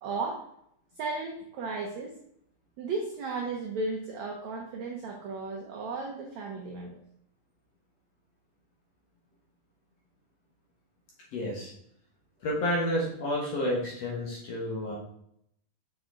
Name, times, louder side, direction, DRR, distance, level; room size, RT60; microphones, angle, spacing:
voice 1, 0.0-0.4 1.0-2.1 2.8-7.0, right 3 dB, 75° right, 1 dB, 1.6 m, -35 dB
voice 2, 11.3-11.7 12.4-15.0, left 1 dB, 55° left, -3 dB, 2.0 m, -30 dB
7.4 x 6.0 x 3.8 m, 0.72 s
omnidirectional pair, 4.5 m